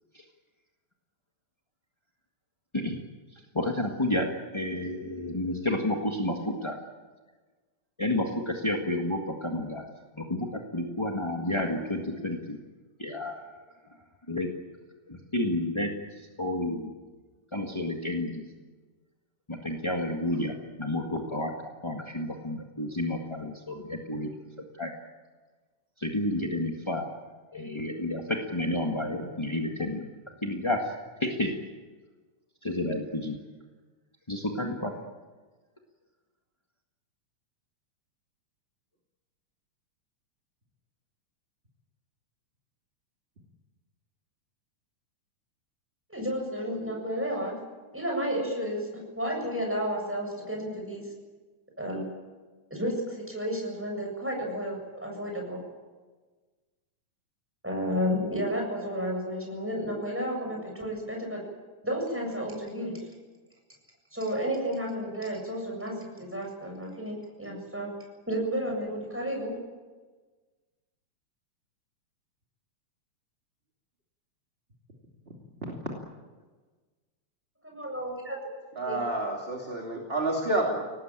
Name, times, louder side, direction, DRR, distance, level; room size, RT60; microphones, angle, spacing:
voice 1, 3.5-6.8 8.0-9.8 10.2-10.5 10.7-12.6 13.0-13.5 14.3-14.5 15.1-15.9 16.4-16.9 17.5-18.4 19.5-24.3 24.8-24.9 26.0-27.1 27.5-30.1 30.4-30.8 31.2-31.6 32.6-33.4 34.3-34.9, left 1 dB, 15° left, 1 dB, 1.0 m, -30 dB
voice 2, 46.1-47.6 47.9-51.0 51.8-52.0 52.7-55.6 57.6-61.4 61.8-62.9 64.1-67.9 68.3-69.6 77.6-78.4 78.9-79.0, equal, 5° right, 0 dB, 7.2 m, -32 dB
voice 3, 78.8-80.8, right 2 dB, 20° right, 0 dB, 2.7 m, -29 dB
24.5 x 18.5 x 9.0 m, 1.3 s
omnidirectional pair, 3.5 m